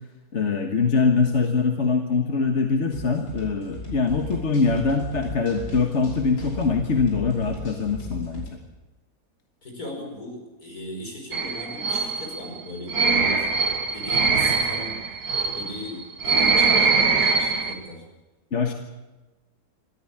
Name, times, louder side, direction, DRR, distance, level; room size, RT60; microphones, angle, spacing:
voice 1, 0.3-8.5 18.5-18.7, left 4 dB, 45° left, 3 dB, 1.7 m, -23 dB
sound 1, 2.9-8.5, left 2 dB, 90° left, 6.3 m, -36 dB
voice 2, 9.6-15.0 15.5-18.0, equal, 65° left, 1 dB, 6.2 m, -37 dB
sound 2, 11.3-17.7, right 4 dB, 75° right, 2.0 m, -22 dB
25.0 x 14.5 x 8.8 m, 1.2 s
omnidirectional pair, 1.7 m